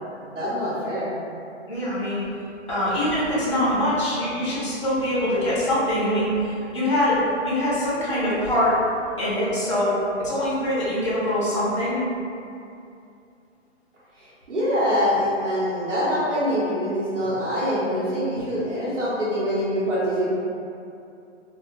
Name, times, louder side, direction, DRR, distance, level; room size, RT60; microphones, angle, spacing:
voice 1, 0.3-1.1 14.2-20.4, equal, 80° right, -10 dB, 1.3 m, -24 dB
voice 2, 1.7-2.2 2.7-8.8 9.2-12.0, left 1 dB, 25° left, -10 dB, 0.5 m, -23 dB
2.4 x 2.3 x 3.2 m, 2.6 s
hypercardioid pair, 180°, 36 cm